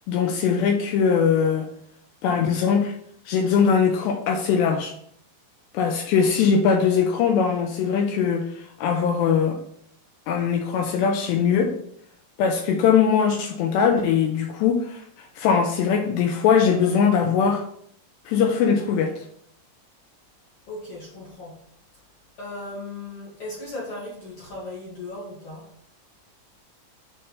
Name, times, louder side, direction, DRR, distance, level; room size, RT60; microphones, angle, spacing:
voice 1, 0.1-1.7 2.2-2.9 3.3-4.9 5.7-9.6 10.3-11.7 12.4-17.6 18.3-19.3, left 6 dB, 85° left, 4 dB, 2.6 m, -21 dB
voice 2, 20.7-21.6 22.4-25.7, left 2 dB, 50° left, -6 dB, 1.8 m, -37 dB
8.5 x 3.3 x 5.5 m, 0.67 s
omnidirectional pair, 5.3 m